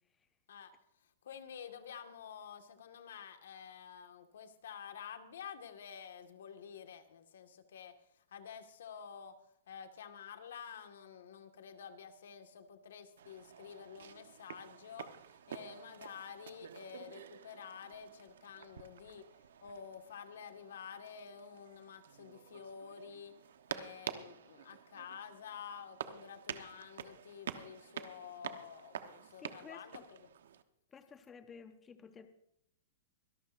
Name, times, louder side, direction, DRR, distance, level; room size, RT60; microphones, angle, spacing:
voice 1, 1.0-19.3 19.6-23.4 23.7-30.3, left 7 dB, 75° left, 7 dB, 1.7 m, -50 dB
sound 1, 13.2-30.6, right 8 dB, 80° right, 1.1 m, -49 dB
voice 2, 29.4-30.0 30.9-32.3, left 6 dB, 10° left, 8 dB, 0.7 m, -53 dB
24.5 x 12.0 x 2.6 m, 0.72 s
supercardioid pair, 170°, 0 cm